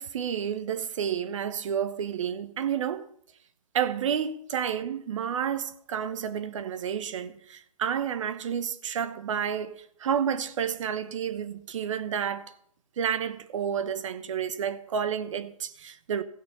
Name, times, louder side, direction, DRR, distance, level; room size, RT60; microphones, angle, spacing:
voice 1, 0.0-3.1 3.7-12.5 13.0-16.2, right 8 dB, 55° right, 1.0 m, -30 dB
16.0 x 6.4 x 5.5 m
hypercardioid pair, 135°, 19 cm